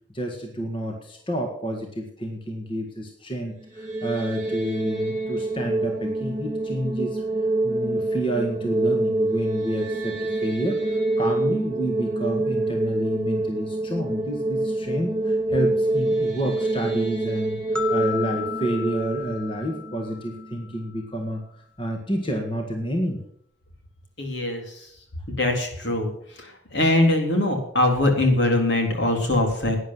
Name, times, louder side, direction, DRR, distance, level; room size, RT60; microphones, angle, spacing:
voice 1, 0.1-7.2 7.6-21.4 21.8-23.2, right 1 dB, 25° left, 2 dB, 1.8 m, -29 dB
sound 1, 3.6-20.7, right 2 dB, 20° right, 4.1 m, -26 dB
sound 2, 17.7-20.9, left 9 dB, 5° left, 1.0 m, -34 dB
voice 2, 24.2-24.6 25.3-26.1 26.7-29.8, left 1 dB, 70° left, 2 dB, 3.7 m, -21 dB
12.0 x 9.9 x 7.6 m, 0.66 s
head